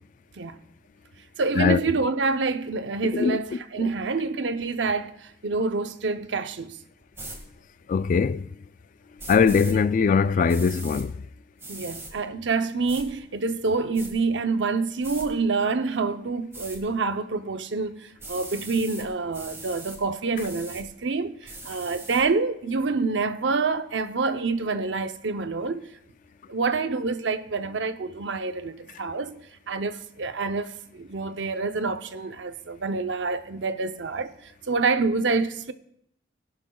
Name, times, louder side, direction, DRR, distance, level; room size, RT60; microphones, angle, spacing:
voice 1, 1.4-6.8 11.7-25.9 26.5-29.4 29.7-35.7, right 4 dB, 75° right, 0.7 m, -27 dB
sound 1, 7.1-7.4 9.2-9.7 10.5-11.0 11.6-12.1 12.9-13.0 13.6-14.1 15.0-15.3 16.5-16.8 18.2-19.1 19.3-20.0 20.3-20.8 21.4-22.2, right 2 dB, 15° right, 1.8 m, -40 dB
voice 2, 7.9-8.5 9.3-11.1, left 5 dB, 45° left, 0.3 m, -21 dB
21.0 x 11.0 x 2.3 m
head